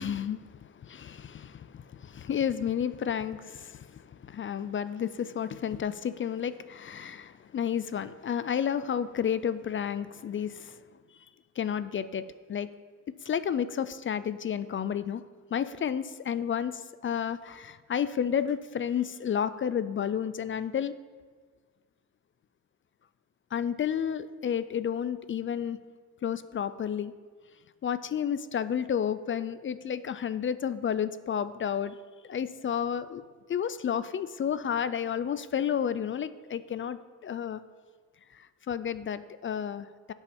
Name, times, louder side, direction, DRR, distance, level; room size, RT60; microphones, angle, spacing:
voice 1, 0.0-10.8 11.6-12.7 13.2-15.2 15.5-20.9 23.5-25.8 26.2-27.1 27.8-32.0 32.2-33.2 33.5-37.6 38.3-40.1, left 8 dB, 35° left, 14 dB, 0.4 m, -31 dB
16.5 x 5.7 x 4.3 m, 1.5 s
cardioid pair, 120°, 34 cm